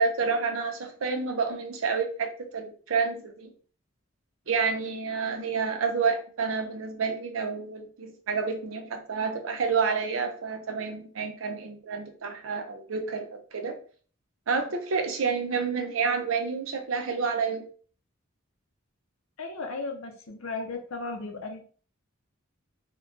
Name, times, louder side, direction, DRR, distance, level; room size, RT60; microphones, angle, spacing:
voice 1, 0.0-3.5 4.5-13.8 14.5-17.7, right 5 dB, 75° right, 5 dB, 0.6 m, -29 dB
voice 2, 19.4-21.6, left 3 dB, 80° left, 4 dB, 0.6 m, -35 dB
2.2 x 2.1 x 3.7 m, 0.42 s
head